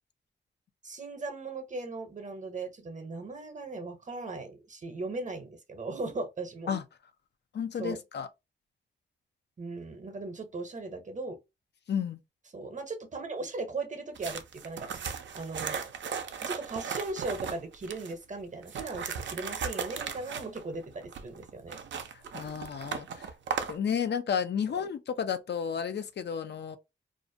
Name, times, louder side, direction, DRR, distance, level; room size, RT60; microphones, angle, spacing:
voice 1, 0.8-6.7 7.8-8.0 9.6-11.4 12.5-14.9 15.3-15.8 16.4-21.8, right 3 dB, 40° right, 0.7 m, -38 dB
voice 2, 7.5-8.3 11.9-12.2 22.1-23.3 23.7-26.8, left 7 dB, 60° left, 0.4 m, -32 dB
sound 1, 14.1-18.1 18.6-23.8, right 6 dB, 70° right, 0.4 m, -37 dB
2.4 x 2.1 x 2.6 m
cardioid pair, 70°, 20 cm